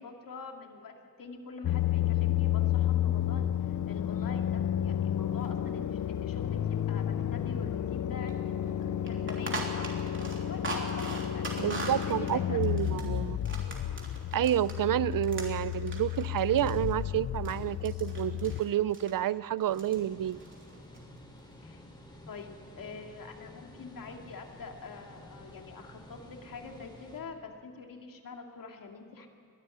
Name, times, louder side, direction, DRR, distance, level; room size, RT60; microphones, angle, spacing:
voice 1, 0.0-12.6 21.6-21.8 22.3-29.3, left 4 dB, 75° left, 3 dB, 2.5 m, -45 dB
sound 1, 1.6-18.6, left 11 dB, 60° left, 0.6 m, -31 dB
sound 2, 8.3-8.4 8.6-8.7 9.1-14.8 15.1-17.6 17.9-18.6 18.9-19.1 19.6-20.0 20.2-21.0, right 2 dB, 35° right, 3.3 m, -40 dB
voice 2, 11.6-13.4 14.3-20.4, right 11 dB, 75° right, 18 dB, 0.6 m, -29 dB
sound 3, 19.7-27.2, left 1 dB, 15° left, 3.5 m, -51 dB
21.5 x 13.0 x 9.7 m, 2.5 s
wide cardioid pair, 145°, 34 cm